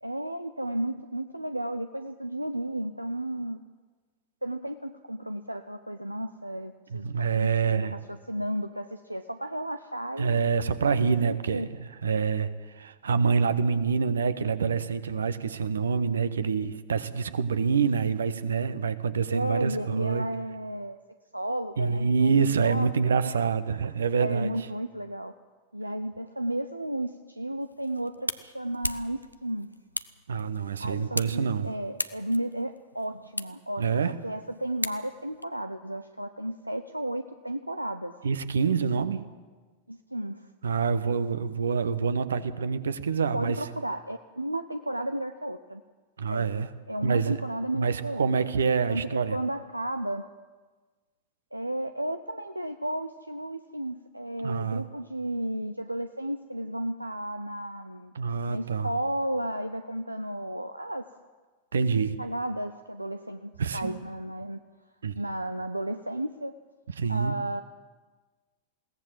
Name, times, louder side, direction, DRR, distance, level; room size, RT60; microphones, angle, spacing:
voice 1, 0.0-3.6 4.4-10.4 11.0-11.7 19.3-21.0 21.3-23.4 24.2-25.3 25.7-29.7 30.8-38.2 39.9-40.5 43.3-45.8 46.3-46.5 46.9-48.5 48.9-50.3 51.5-58.1 58.5-61.1 62.2-64.6 65.1-66.5 67.1-67.6, right 1 dB, 85° right, 9 dB, 0.6 m, -33 dB
voice 2, 6.9-7.9 10.2-20.3 21.8-24.5 30.3-31.7 33.8-34.2 38.2-39.2 40.6-43.6 46.2-46.7 47.0-47.4 47.7-49.4 54.4-54.8 58.1-58.9 61.7-62.2 63.6-64.0 65.0-65.2 67.0-67.4, right 5 dB, 70° right, 13 dB, 1.2 m, -26 dB
sound 1, 27.6-35.4, left 1 dB, 90° left, 0.7 m, -38 dB
21.5 x 17.5 x 7.6 m, 1.4 s
figure-of-eight pair, 90°, 0 cm